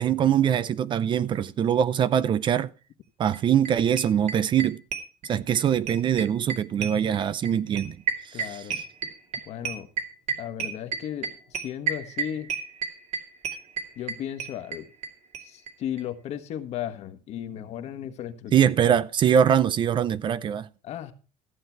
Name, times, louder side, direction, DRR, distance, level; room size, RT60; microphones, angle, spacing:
voice 1, 0.0-2.7 3.2-4.8 5.3-8.0 8.2-8.6 18.5-20.7, right 9 dB, 35° right, 0.5 m, -23 dB
sound 1, 3.3-3.4 3.7-3.8 4.0-5.6 5.9-15.1 15.3-15.4 15.7-15.8 16.0-16.1, right 6 dB, 55° right, 2.4 m, -30 dB
voice 2, 8.3-8.8 9.5-9.9 10.4-12.5 14.0-14.9 15.4-18.5 18.8-18.9 20.8-21.1, left 10 dB, 55° left, 1.4 m, -35 dB
14.5 x 7.8 x 4.5 m
cardioid pair, 135°, 13 cm